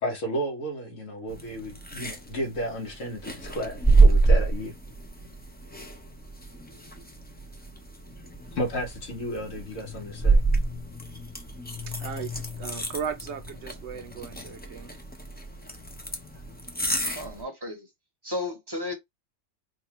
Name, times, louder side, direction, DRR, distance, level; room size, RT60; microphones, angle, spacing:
voice 1, 0.0-4.7 8.5-10.4, equal, 80° left, 1.6 m, -32 dB
sound 1, 1.3-17.4, right 3 dB, 15° left, 0.3 m, -27 dB
voice 2, 11.9-14.9, right 7 dB, 65° right, 0.9 m, -37 dB
voice 3, 17.1-17.9 18.2-18.9, left 2 dB, 25° right, 0.7 m, -33 dB
4.4 x 2.3 x 3.0 m
omnidirectional pair, 1.3 m